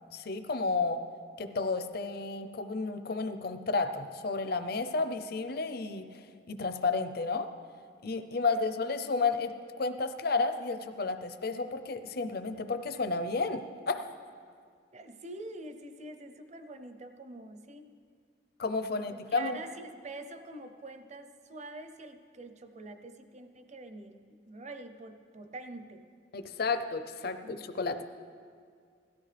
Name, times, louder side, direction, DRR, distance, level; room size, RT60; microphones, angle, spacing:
voice 1, 0.1-1.0 1.4-7.5 8.0-14.0 18.6-19.6 26.3-28.0, left 3 dB, 55° left, 9 dB, 0.7 m, -32 dB
voice 2, 14.9-17.9 19.3-26.0 27.4-27.6, right 2 dB, 40° right, 8 dB, 0.7 m, -46 dB
17.0 x 13.5 x 3.4 m, 2.1 s
head